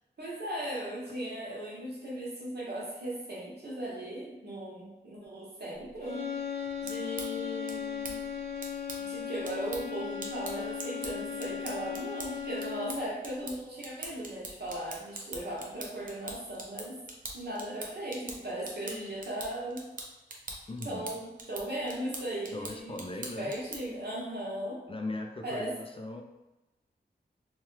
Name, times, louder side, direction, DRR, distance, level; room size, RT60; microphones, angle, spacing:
voice 1, 0.2-6.2 6.8-8.1 9.0-17.0 17.3-19.8 20.8-23.0 23.4-24.8 25.4-25.7, right 1 dB, 70° right, -5 dB, 1.1 m, -37 dB
sound 1, 6.0-13.2, left 7 dB, 75° left, 1.3 m, -37 dB
sound 2, 6.7-24.0, right 2 dB, 50° right, 0.6 m, -44 dB
voice 2, 20.7-21.1 22.5-23.5 24.9-26.2, left 2 dB, 30° left, 3 dB, 0.4 m, -39 dB
3.0 x 2.3 x 3.1 m, 1.0 s
wide cardioid pair, 70°, 18 cm